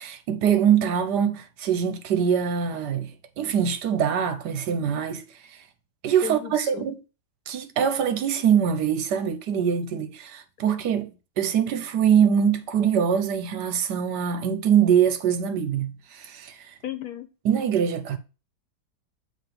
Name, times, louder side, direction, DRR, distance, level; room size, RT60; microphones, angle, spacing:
voice 1, 0.0-3.1 3.4-5.2 5.5-5.6 6.0-6.9 7.5-11.1 11.4-16.7 17.4-18.2, right 8 dB, 75° right, 1.4 m, -23 dB
voice 2, 6.2-6.9 16.8-17.3, left 10 dB, 65° left, 1.2 m, -34 dB
7.2 x 3.0 x 5.9 m
omnidirectional pair, 1.8 m